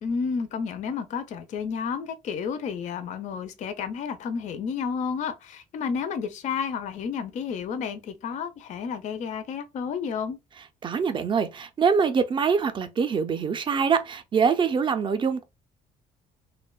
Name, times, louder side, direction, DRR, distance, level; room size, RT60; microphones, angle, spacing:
voice 1, 0.0-10.4, left 6 dB, 45° left, 0.4 m, -31 dB
voice 2, 10.8-15.4, right 6 dB, 30° right, 0.4 m, -24 dB
2.6 x 2.1 x 2.2 m
cardioid pair, 110°, 17 cm